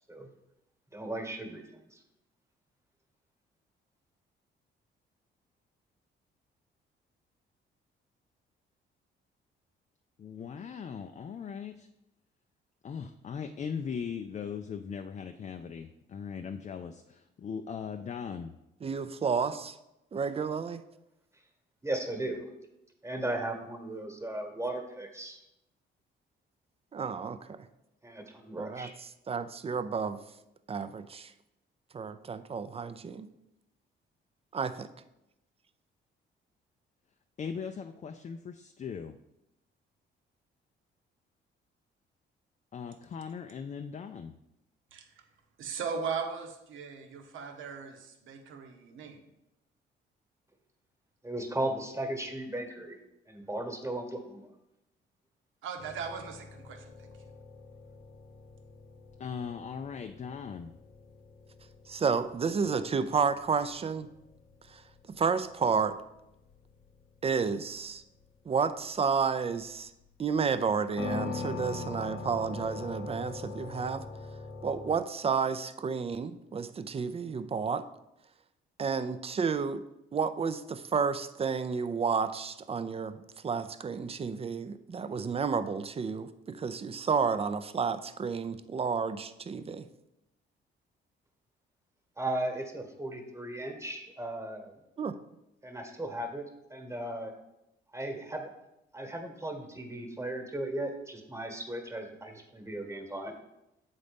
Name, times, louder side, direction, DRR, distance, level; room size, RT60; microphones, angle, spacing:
voice 1, 0.9-1.6 1.9-2.0 21.8-22.4 23.0-25.4 28.0-28.9 51.2-52.9 53.3-54.5 92.2-94.7 95.6-97.3 97.9-98.5 98.9-103.3, right 1 dB, 15° right, 4 dB, 1.3 m, -36 dB
voice 2, 10.2-11.9 12.8-18.5 37.4-39.2 42.7-44.4 59.2-60.7, left 6 dB, 35° left, 6 dB, 0.4 m, -39 dB
voice 3, 18.8-19.8 20.1-20.8 26.9-27.7 28.6-28.9 29.3-30.2 30.7-31.3 31.9-33.3 34.5-34.9 61.9-64.1 64.7-64.8 65.1-66.0 67.2-68.0 68.5-69.9 70.2-74.0 74.6-77.9 78.8-79.8 80.1-89.9 95.0-95.2, right 5 dB, 30° right, 12 dB, 0.5 m, -31 dB
voice 4, 45.6-49.2 55.6-56.8, right 5 dB, 80° right, 5 dB, 1.0 m, -38 dB
sound 1, 55.8-75.0, left 4 dB, 85° left, 0.9 m, -44 dB
7.3 x 4.0 x 5.2 m, 0.88 s
cardioid pair, 90°, 20 cm